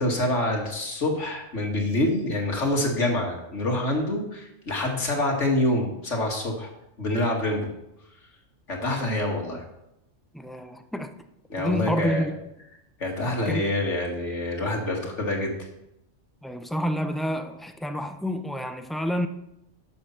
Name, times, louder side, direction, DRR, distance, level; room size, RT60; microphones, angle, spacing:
voice 1, 0.0-6.7 7.0-7.7 8.7-9.6 11.5-12.3 13.0-15.5, left 1 dB, 70° left, 2.4 m, -26 dB
voice 2, 10.3-11.1 11.6-12.3 13.5-13.7 16.4-19.3, equal, ahead, 0.4 m, -28 dB
12.0 x 7.0 x 5.8 m
omnidirectional pair, 1.3 m